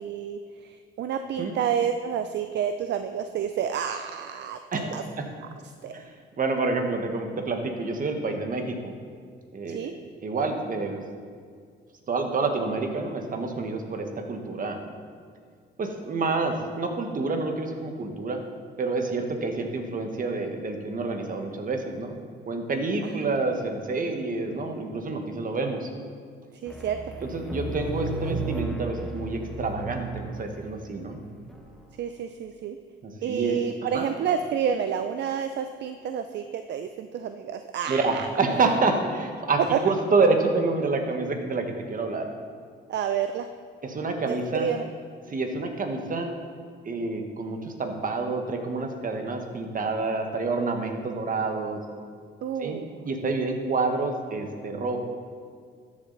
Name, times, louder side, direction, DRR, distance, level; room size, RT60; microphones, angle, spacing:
voice 1, 0.0-4.6 4.9-5.0 5.8-5.9 9.7-9.9 23.0-23.3 26.6-27.0 32.0-32.8 33.2-38.3 39.7-39.8 42.9-43.5 44.3-44.9 52.4-52.9, right 8 dB, 60° right, 9 dB, 0.5 m, -29 dB
voice 2, 4.7-5.3 5.9-6.1 6.4-8.9 9.5-11.0 12.1-14.8 15.8-18.4 18.8-22.2 22.5-25.9 27.2-31.2 33.0-33.6 33.9-34.1 37.9-42.3 43.8-44.7 45.3-46.3 46.8-51.8 52.6-55.0, right 3 dB, 45° right, 4 dB, 1.4 m, -28 dB
sound 1, 26.7-31.6, right 2 dB, ahead, 1.3 m, -35 dB
13.0 x 7.4 x 4.0 m, 2.1 s
cardioid pair, 90°, 20 cm